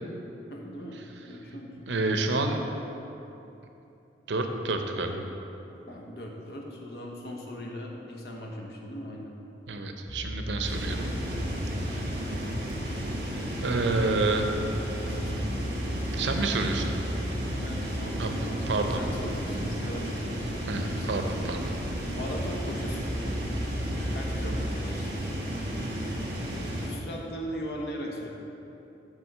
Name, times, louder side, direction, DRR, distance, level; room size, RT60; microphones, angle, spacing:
voice 1, 0.5-1.8 5.9-9.3 14.6-15.5 17.5-21.1 22.1-23.1 24.1-25.1 26.8-28.3, equal, 65° left, -1 dB, 1.0 m, -39 dB
voice 2, 1.9-2.6 4.3-5.3 9.7-11.1 11.8-12.1 13.6-14.5 16.1-16.9 18.2-18.3 18.7-19.0 20.7-21.7, right 2 dB, 85° right, 5 dB, 0.6 m, -29 dB
sound 1, 10.1-24.7, equal, 15° left, 0.4 m, -38 dB
sound 2, 10.6-26.9, equal, 60° right, 1.6 m, -33 dB
7.5 x 3.7 x 6.6 m, 2.9 s
head